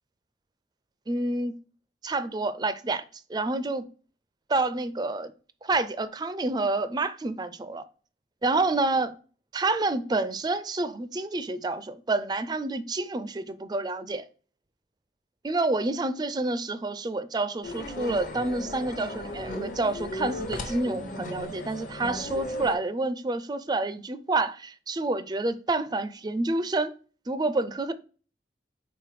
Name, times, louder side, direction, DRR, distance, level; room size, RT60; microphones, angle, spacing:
voice 1, 1.1-1.6 2.0-3.0 3.3-3.9 4.5-5.3 5.6-7.8 8.4-9.1 9.5-14.3 15.4-26.9 27.3-27.9, right 2 dB, 20° right, 0.4 m, -28 dB
sound 1, 17.6-22.8, left 1 dB, 45° left, 0.9 m, -36 dB
5.0 x 4.0 x 4.7 m
head